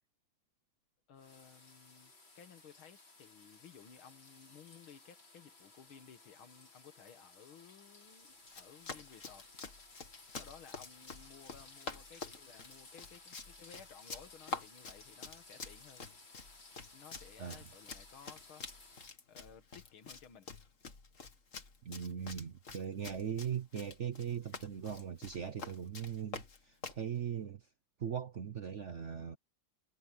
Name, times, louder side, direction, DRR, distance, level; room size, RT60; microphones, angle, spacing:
voice 1, 1.1-9.5 10.4-16.0 16.9-18.7 19.3-20.5, left 7 dB, 90° left, 2.4 m, -57 dB
sound 1, 1.2-19.1, left 3 dB, 70° left, 6.0 m, -58 dB
Run, 8.4-27.1, left 4 dB, 40° left, 2.2 m, -48 dB
voice 2, 21.8-27.6 28.0-29.4, right 8 dB, 55° right, 0.8 m, -39 dB
omnidirectional pair, 2.2 m